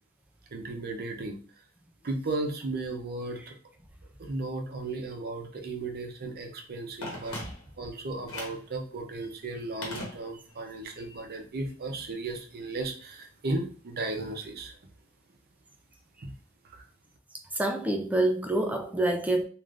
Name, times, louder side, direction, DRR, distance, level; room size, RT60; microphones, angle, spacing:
voice 1, 0.5-1.4 2.0-3.5 4.2-7.4 7.8-14.7 16.2-16.3 16.7-16.8, right 2 dB, 50° right, 0.6 m, -35 dB
Telephone, 7.0-7.9 8.3-8.7 9.8-10.7 11.0-11.1, left 1 dB, 85° left, 1.1 m, -39 dB
voice 2, 17.5-19.4, right 1 dB, 5° right, 0.4 m, -26 dB
3.3 x 2.5 x 2.4 m
head